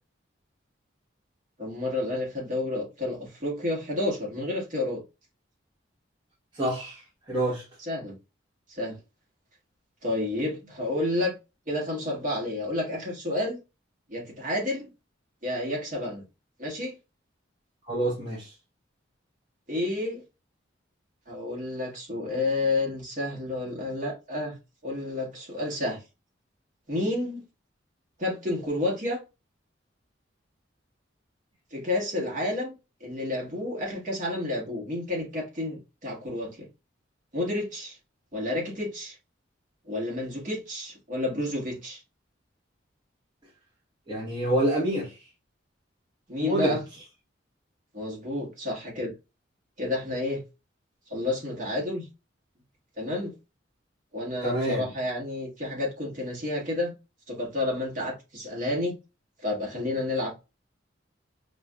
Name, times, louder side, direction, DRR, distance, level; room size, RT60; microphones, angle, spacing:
voice 1, 1.6-5.0 7.8-8.1 8.7-9.0 10.0-11.4 11.7-13.6 14.1-14.9 15.4-16.2 16.6-16.9 19.7-20.2 21.3-24.6 24.8-26.0 26.9-27.4 28.2-29.2 31.7-32.7 33.0-36.7 37.3-38.0 38.3-39.2 39.9-42.0 46.3-46.8 47.9-49.1 49.8-50.4 51.1-52.1 53.0-53.3 54.1-56.9 57.3-59.0 59.4-60.3, left 2 dB, 40° right, 1.5 m, -30 dB
voice 2, 6.5-7.0 7.3-7.6 17.9-18.5 44.1-45.2 46.4-46.8 54.4-54.9, right 1 dB, 25° right, 1.1 m, -27 dB
4.8 x 2.4 x 2.2 m
head